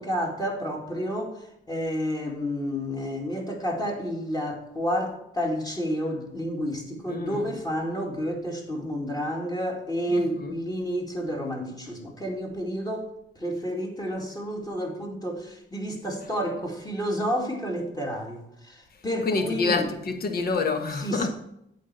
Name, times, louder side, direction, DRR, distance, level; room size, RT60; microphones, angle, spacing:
voice 1, 0.0-19.9 21.0-21.3, equal, 20° left, 2.3 m, -30 dB
voice 2, 7.1-7.5 10.1-10.5 19.2-21.3, left 4 dB, 50° left, 1.2 m, -27 dB
8.4 x 4.3 x 6.7 m
cardioid pair, 90°, 20 cm